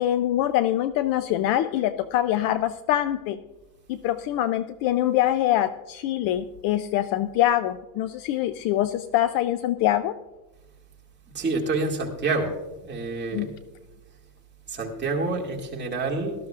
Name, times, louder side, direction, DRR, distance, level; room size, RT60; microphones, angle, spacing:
voice 1, 0.0-3.4 3.9-10.1 13.3-13.5, left 12 dB, 45° left, 13 dB, 0.4 m, -24 dB
voice 2, 11.3-12.5 12.8-13.5 14.7-16.3, right 3 dB, 20° right, -1 dB, 2.2 m, -27 dB
18.0 x 13.0 x 2.4 m, 1.1 s
supercardioid pair, 140°, 49 cm